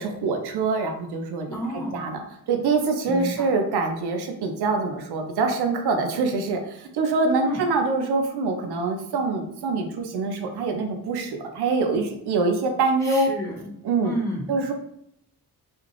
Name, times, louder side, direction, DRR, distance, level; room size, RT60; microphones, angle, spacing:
voice 1, 0.0-1.5 1.9-2.2 2.5-13.3 13.8-14.1 14.5-14.7, right 3 dB, 75° right, 4 dB, 0.6 m, -24 dB
voice 2, 1.5-2.0 3.0-3.5 7.4-7.6 13.0-13.7 14.0-14.6, equal, 10° left, -3 dB, 1.2 m, -31 dB
2.5 x 2.4 x 3.2 m, 0.76 s
supercardioid pair, 50°, 39 cm